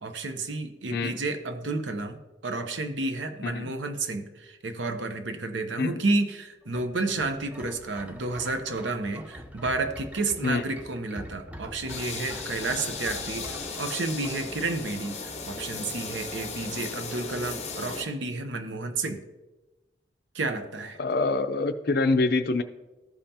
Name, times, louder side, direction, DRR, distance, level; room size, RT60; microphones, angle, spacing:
voice 1, 0.0-19.2 20.3-21.0, right 3 dB, 80° right, 8 dB, 0.8 m, -31 dB
voice 2, 3.4-3.7 5.8-6.0 7.1-7.2 10.4-10.6 21.0-22.6, left 3 dB, 55° left, 10 dB, 0.5 m, -26 dB
sound 1, 6.6-15.5 15.9-16.0, equal, 10° right, 0.5 m, -45 dB
sound 2, 11.9-18.0, left 4 dB, 35° left, 0.8 m, -36 dB
13.5 x 5.4 x 2.8 m, 1.1 s
head